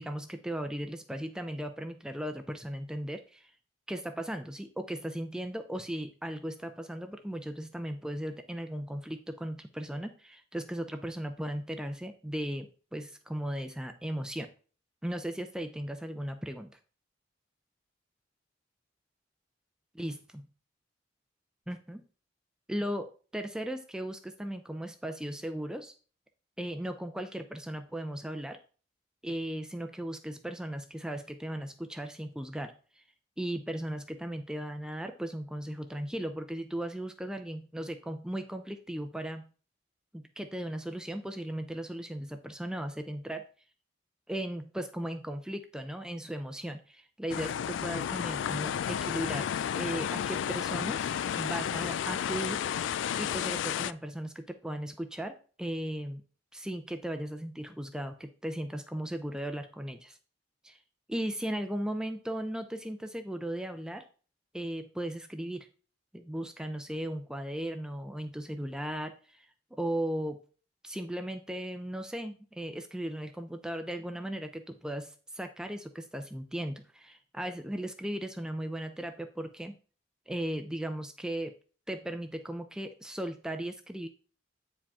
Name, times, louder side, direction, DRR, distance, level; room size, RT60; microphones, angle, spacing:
voice 1, 0.0-3.5 3.9-14.5 15.0-16.7 19.9-20.4 21.7-22.0 22.7-25.9 26.6-28.6 29.2-33.0 33.4-39.5 40.1-43.4 44.3-51.1 51.4-52.6 53.2-56.2 56.5-60.2 60.6-60.8 61.1-64.0 64.5-65.7 66.1-70.4 70.8-79.8 80.3-81.5 81.9-84.1, right 1 dB, 5° right, 6 dB, 0.5 m, -37 dB
sound 1, 47.3-53.9, left 9 dB, 80° left, 0.3 m, -32 dB
8.7 x 4.9 x 3.5 m, 0.38 s
head